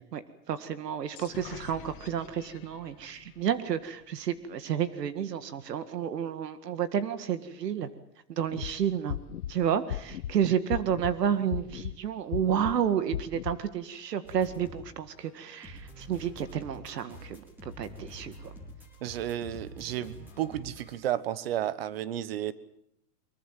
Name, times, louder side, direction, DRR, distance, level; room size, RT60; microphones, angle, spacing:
voice 1, 0.1-7.9 8.3-9.2 9.5-18.3, right 9 dB, 75° right, 12 dB, 2.0 m, -31 dB
sound 1, 1.1-4.8, left 9 dB, 35° left, 2.3 m, -49 dB
sound 2, 8.5-8.7 9.1-9.5 9.9-10.3 10.7-11.1 11.5-11.9 12.3-12.7 13.1-13.5, left 11 dB, 65° left, 1.3 m, -34 dB
sound 3, 14.2-14.9 15.2-20.9, equal, 5° right, 3.7 m, -47 dB
voice 2, 19.0-22.5, right 12 dB, 35° right, 17 dB, 1.1 m, -32 dB
24.0 x 22.5 x 7.6 m, 0.72 s
supercardioid pair, 180°, 48 cm